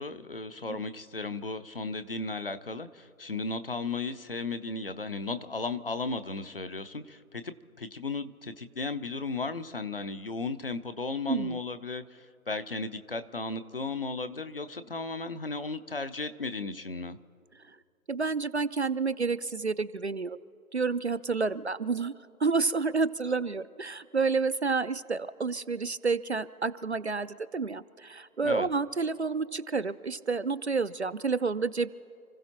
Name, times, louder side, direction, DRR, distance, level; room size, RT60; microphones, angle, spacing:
voice 1, 0.0-17.2 28.4-28.7, left 3 dB, 40° left, 11 dB, 0.7 m, -35 dB
voice 2, 11.3-11.6 17.7-17.8 18.1-20.4 20.7-22.1 22.4-31.9, right 4 dB, 50° right, 14 dB, 0.5 m, -29 dB
29.5 x 15.0 x 2.9 m, 2.4 s
figure-of-eight pair, 150°, 44 cm